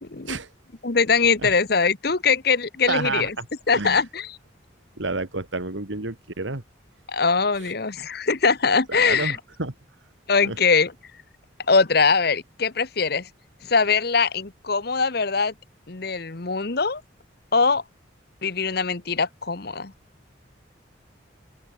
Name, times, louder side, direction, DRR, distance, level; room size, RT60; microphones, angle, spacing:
voice 1, 0.0-0.4 0.8-3.3 3.7-4.4 7.1-9.4 10.3-10.9 11.7-13.3 13.6-15.5 15.9-17.0 17.5-17.8 18.4-19.9, left 5 dB, 55° left, 1.1 m, -22 dB
voice 2, 2.9-3.5 3.7-4.0 5.0-6.6 7.6-7.7 8.9-9.7 10.4-10.6, right 3 dB, 80° right, 2.3 m, -29 dB
open air
head